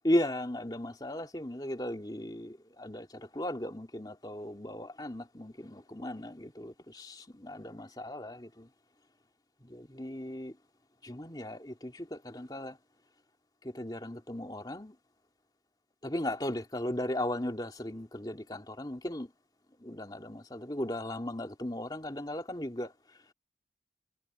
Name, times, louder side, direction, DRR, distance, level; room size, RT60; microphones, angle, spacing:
voice 1, 0.0-8.7 9.7-10.5 11.0-12.8 13.6-14.9 16.0-19.3 19.8-22.9, left 1 dB, 25° left, 2.4 m, -36 dB
head